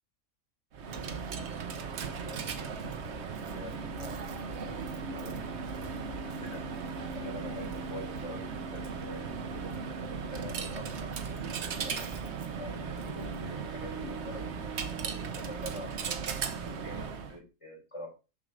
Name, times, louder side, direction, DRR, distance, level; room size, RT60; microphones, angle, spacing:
Coin (dropping), 0.7-17.4, right 5 dB, 60° right, 1.1 m, -37 dB
voice 1, 2.1-9.5 10.2-12.1 12.6-18.1, left 1 dB, 20° left, -3 dB, 4.7 m, -46 dB
7.3 x 6.3 x 4.9 m, 0.30 s
omnidirectional pair, 1.4 m